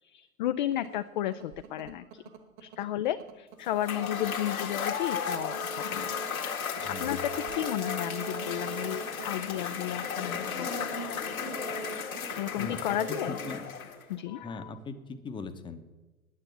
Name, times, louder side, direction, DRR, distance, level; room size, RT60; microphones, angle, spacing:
voice 1, 0.0-2.2 2.6-6.2 6.6-10.9 12.3-13.4 14.1-14.7, left 12 dB, 35° left, 10 dB, 0.4 m, -33 dB
sound 1, 0.7-14.6, right 4 dB, 30° right, 1.3 m, -43 dB
Cheering / Applause / Crowd, 3.6-14.1, left 7 dB, 75° left, 1.8 m, -35 dB
voice 2, 6.8-7.2 12.6-12.8 13.1-13.7 14.4-15.8, left 4 dB, 10° left, 9 dB, 0.8 m, -40 dB
9.6 x 9.4 x 9.3 m, 1.2 s
figure-of-eight pair, 100°, 43 cm